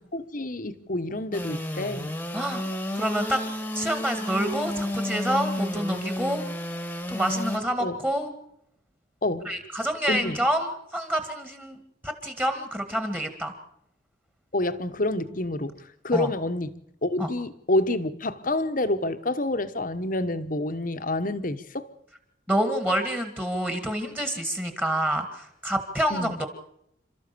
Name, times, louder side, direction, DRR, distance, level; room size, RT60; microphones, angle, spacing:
voice 1, 0.1-2.1 7.8-8.0 9.2-9.5 10.1-10.4 14.5-16.7 17.0-21.9 26.1-26.4, left 2 dB, 40° left, 11 dB, 1.2 m, -28 dB
Engine / Sawing, 1.3-7.6, left 1 dB, 10° left, 1.5 m, -32 dB
voice 2, 2.3-2.6 3.0-3.4 3.7-6.4 7.1-8.3 9.5-10.7 10.9-11.8 12.0-13.5 16.1-16.3 17.2-17.3 22.5-26.5, right 1 dB, 10° right, 6 dB, 2.0 m, -27 dB
28.0 x 13.5 x 6.9 m, 0.74 s
head